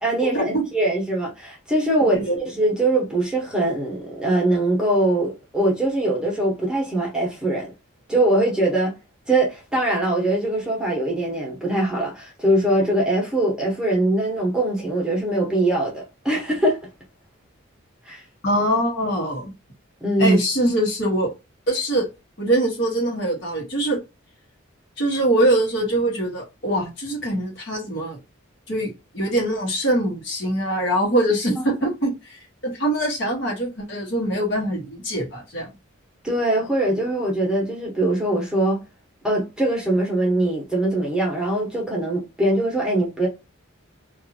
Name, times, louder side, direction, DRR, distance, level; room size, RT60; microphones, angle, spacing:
voice 1, 0.0-7.7 8.1-8.9 9.3-16.8 18.1-18.2 20.0-20.4 36.2-38.8 39.2-43.3, right 1 dB, 5° right, 1.0 m, -22 dB
voice 2, 18.4-19.5 20.2-21.3 21.7-22.1 22.4-24.0 25.0-28.2 28.7-35.7, right 1 dB, 55° left, 1.2 m, -23 dB
2.7 x 2.5 x 2.7 m
head